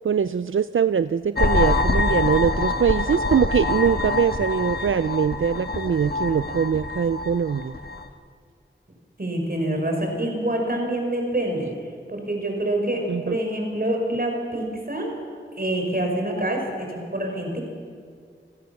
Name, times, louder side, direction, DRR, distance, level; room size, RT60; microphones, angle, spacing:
voice 1, 0.0-7.7 13.1-13.4, right 7 dB, 80° right, 13 dB, 0.5 m, -22 dB
sound 1, 1.4-8.1, left 3 dB, 50° left, 1.6 m, -25 dB
voice 2, 9.2-11.7 12.1-15.1 15.6-17.6, right 1 dB, 50° right, 2 dB, 5.5 m, -26 dB
27.5 x 16.5 x 7.1 m, 2.1 s
wide cardioid pair, 60°, 20 cm